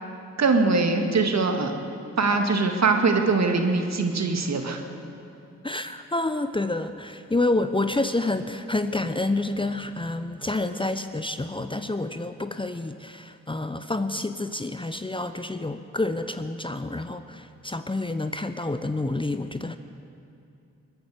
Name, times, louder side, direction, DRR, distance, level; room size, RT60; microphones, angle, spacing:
voice 1, 0.4-1.7 2.2-4.8, right 3 dB, 55° right, 4 dB, 2.0 m, -22 dB
voice 2, 5.6-19.8, left 2 dB, 15° left, 9 dB, 0.8 m, -28 dB
20.5 x 10.5 x 6.6 m, 2.6 s
supercardioid pair, 40°, 33 cm